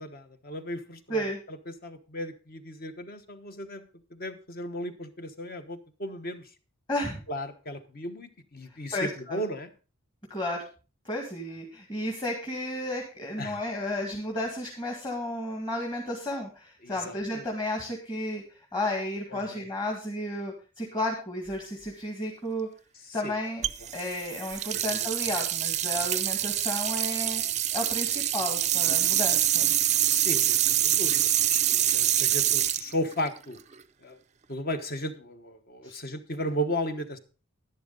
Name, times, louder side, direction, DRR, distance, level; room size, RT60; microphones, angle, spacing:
voice 1, 0.0-3.8 4.1-6.5 7.3-9.7 13.4-13.6 16.8-17.4 19.3-19.6 23.1-23.3 24.7-25.1 30.1-31.2 31.5-33.6 34.0-34.2 34.5-37.2, equal, 45° left, 8 dB, 1.2 m, -35 dB
voice 2, 6.9-7.2 8.9-9.4 10.3-10.6 11.1-22.7 23.1-23.7 23.9-27.4 27.7-29.7 35.8-36.0, left 1 dB, 20° left, 0 dB, 1.9 m, -33 dB
sound 1, 23.6-33.8, right 12 dB, 30° right, 0.5 m, -26 dB
11.5 x 11.0 x 3.9 m, 0.34 s
head